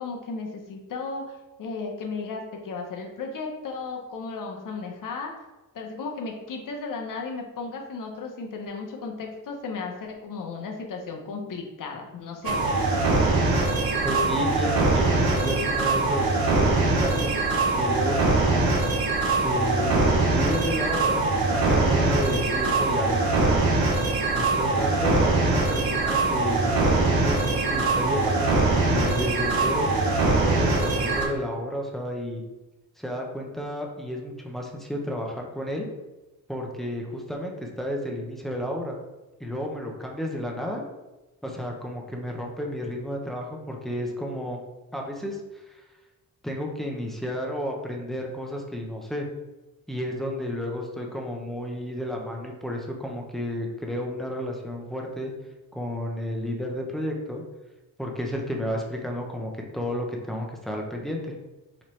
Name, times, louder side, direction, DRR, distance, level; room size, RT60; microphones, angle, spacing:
voice 1, 0.0-5.3 5.7-12.8, left 4 dB, 65° left, 1 dB, 0.8 m, -35 dB
sound 1, 12.4-31.3, right 3 dB, 90° right, 0.8 m, -22 dB
voice 2, 14.0-16.3 16.6-17.3 17.7-18.8 19.4-23.8 24.3-29.9 30.4-32.4 33.0-35.9 36.5-39.0 39.4-40.8 41.4-44.6 44.9-45.4 45.7-45.8 46.4-49.3 49.9-55.3 55.7-57.4 58.0-61.4, equal, ahead, 0 dB, 0.7 m, -32 dB
4.2 x 2.9 x 3.1 m, 1.1 s
cardioid pair, 90°, 35 cm